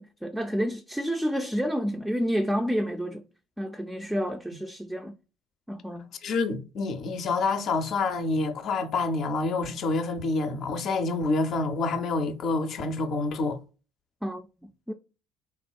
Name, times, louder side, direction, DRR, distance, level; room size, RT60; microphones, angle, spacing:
voice 1, 0.0-3.2 3.6-5.2 5.7-6.1 14.2-14.5 14.9-15.0, equal, 5° right, 0.3 m, -29 dB
voice 2, 6.2-13.6, left 3 dB, 55° left, 0.5 m, -27 dB
3.4 x 2.2 x 2.2 m
hypercardioid pair, 65°, 0 cm